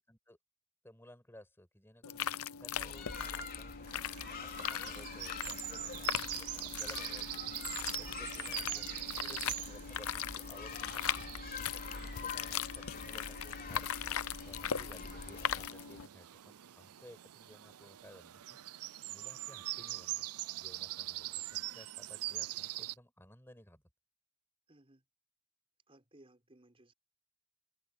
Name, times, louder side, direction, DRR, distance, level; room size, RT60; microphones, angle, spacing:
voice 1, 0.8-2.3 2.6-7.3 8.0-11.2 11.8-13.9 14.4-20.2 20.6-23.8, left 1 dB, 10° left, 5.7 m, -57 dB
sound 1, 2.0-16.1, left 9 dB, 70° left, 0.7 m, -40 dB
sound 2, 2.7-15.7, left 4 dB, 45° left, 3.2 m, -46 dB
sound 3, 3.9-22.9, right 16 dB, 90° right, 0.5 m, -44 dB
voice 2, 8.0-8.5 9.2-9.6 24.7-25.0 25.9-26.9, right 1 dB, 25° right, 5.0 m, -60 dB
head